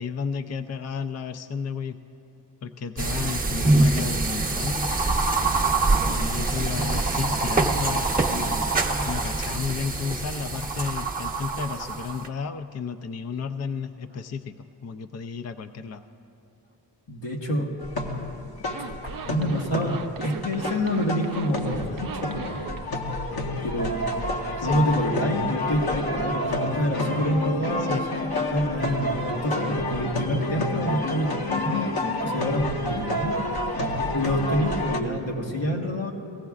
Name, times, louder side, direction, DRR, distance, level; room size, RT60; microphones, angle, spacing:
voice 1, 0.0-2.0 2.6-5.0 6.0-8.7 9.1-16.0 24.6-24.8 27.8-28.0, left 5 dB, 40° left, 9 dB, 0.4 m, -32 dB
sound 1, 3.0-12.3, right 3 dB, 20° right, 0.8 m, -24 dB
voice 2, 17.1-17.7 19.0-22.6 23.6-24.0 24.6-31.9 32.2-33.4 34.1-36.1, equal, 80° left, -1 dB, 1.5 m, -27 dB
sound 2, 17.8-35.0, left 2 dB, 55° left, 1.0 m, -29 dB
Zipper (clothing), 18.6-22.8, right 6 dB, 50° right, 0.6 m, -37 dB
19.0 x 15.0 x 2.4 m, 2.9 s
wide cardioid pair, 65°, 44 cm